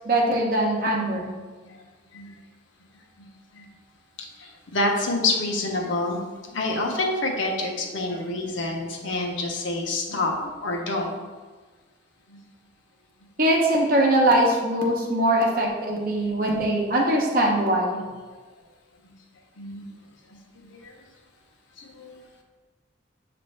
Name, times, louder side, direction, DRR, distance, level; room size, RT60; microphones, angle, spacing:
voice 1, 0.1-1.3 13.4-18.0, right 1 dB, 45° right, -1 dB, 0.7 m, -22 dB
voice 2, 1.0-1.3 2.1-2.3 3.6-3.7 4.7-6.2 6.5-10.3 10.6-11.1 19.6-19.8 20.7-20.9 22.0-22.2, left 2 dB, 80° left, 1 dB, 0.7 m, -27 dB
6.0 x 2.5 x 3.2 m, 1.4 s
head